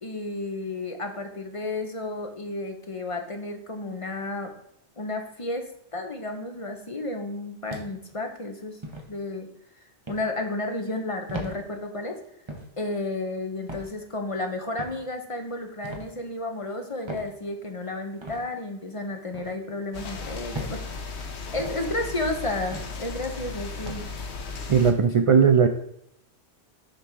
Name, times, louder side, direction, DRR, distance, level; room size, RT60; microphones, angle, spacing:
voice 1, 0.0-4.5 5.0-8.8 9.1-9.5 10.1-12.2 12.8-21.2 21.5-24.0, left 2 dB, 30° left, 4 dB, 0.8 m, -32 dB
sound 1, 7.7-8.1 8.8-9.1 10.1-10.3 11.3-11.6 12.5-12.7 13.7-13.9 14.8-15.0 15.8-16.1 17.1-17.3 18.2-18.4 19.3-19.6 20.5-20.8 21.6-21.8 22.7-23.0 23.9-24.1, equal, 25° right, 1.0 m, -37 dB
sound 2, 19.9-24.9, left 4 dB, 75° left, 1.2 m, -36 dB
voice 2, 24.7-25.7, right 6 dB, 60° right, 6 dB, 0.3 m, -18 dB
6.7 x 3.5 x 6.1 m, 0.76 s
omnidirectional pair, 1.2 m